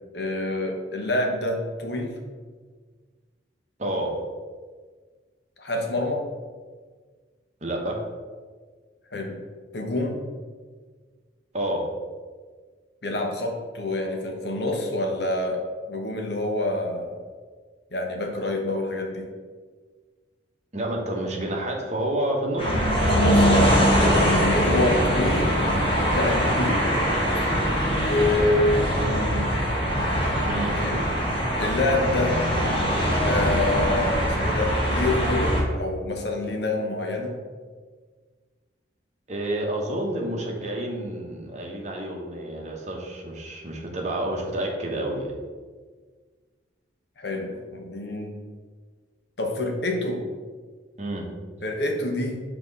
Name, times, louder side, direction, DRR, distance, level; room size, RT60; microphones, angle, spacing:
voice 1, 0.1-2.2 5.6-6.2 9.1-9.4 9.7-10.2 13.0-17.2 17.9-19.3 23.1-23.8 24.2-25.7 26.0-27.0 28.0-29.7 30.4-30.5 30.8-31.0 31.6-32.4 33.2-37.4 47.2-48.4 49.4-50.3 51.6-52.4, left 2 dB, 60° left, 2 dB, 0.9 m, -27 dB
voice 2, 3.8-4.2 7.6-8.0 11.5-11.9 20.7-22.8 24.5-24.8 30.4-30.8 39.3-45.4 51.0-51.3, right 1 dB, 35° right, 0 dB, 1.0 m, -29 dB
sound 1, 22.6-35.6, equal, 30° left, 1.1 m, -22 dB
6.0 x 3.0 x 5.3 m, 1.5 s
head